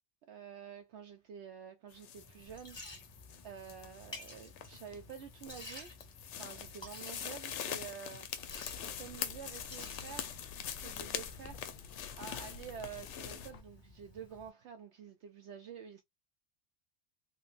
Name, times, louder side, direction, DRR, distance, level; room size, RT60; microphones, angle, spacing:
voice 1, 0.2-2.8 3.4-5.9 6.4-8.3 8.8-11.8 12.2-16.0, right 7 dB, 70° right, 0.9 m, -49 dB
sound 1, 1.9-13.5, left 9 dB, 75° left, 0.9 m, -44 dB
Liquid, 2.2-14.5, left 2 dB, 25° left, 1.2 m, -53 dB
sound 2, 8.3-13.6, left 5 dB, 55° left, 0.6 m, -53 dB
3.2 x 2.9 x 2.4 m
omnidirectional pair, 1.2 m